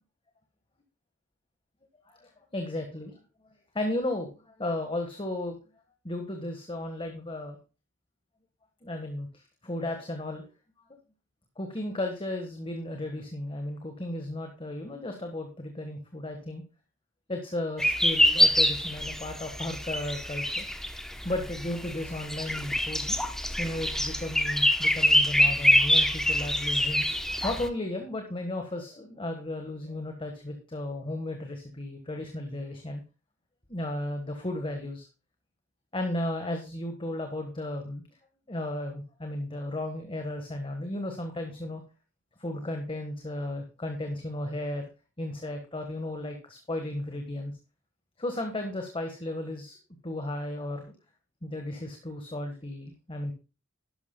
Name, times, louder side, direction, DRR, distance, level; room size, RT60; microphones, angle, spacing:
voice 1, 2.1-3.1 3.7-5.6 6.0-7.6 8.8-10.5 11.6-16.6 17.3-20.7 21.2-23.2 23.6-27.1 27.4-33.0 33.7-35.1 35.9-38.0 38.5-41.8 42.4-44.9 45.2-47.5 48.2-49.8 50.0-50.9 51.4-53.3, left 1 dB, 25° left, 4 dB, 1.4 m, -34 dB
sound 1, 17.8-27.7, left 1 dB, ahead, 0.8 m, -25 dB
12.0 x 11.5 x 2.2 m, 0.33 s
head